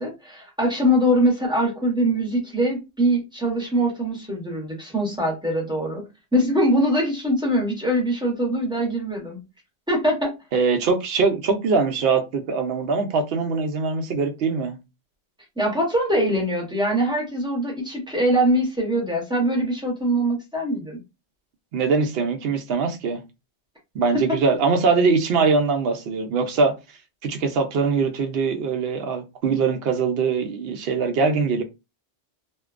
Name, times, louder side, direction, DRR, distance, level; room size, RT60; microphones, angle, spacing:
voice 1, 0.0-6.0 6.3-9.4 9.9-10.3 15.6-21.0 24.1-24.2, equal, 5° right, 0.7 m, -22 dB
voice 2, 10.5-14.8 21.7-23.2 23.9-26.8 27.2-31.6, right 4 dB, 70° right, 0.8 m, -22 dB
2.6 x 2.2 x 2.4 m
omnidirectional pair, 1.1 m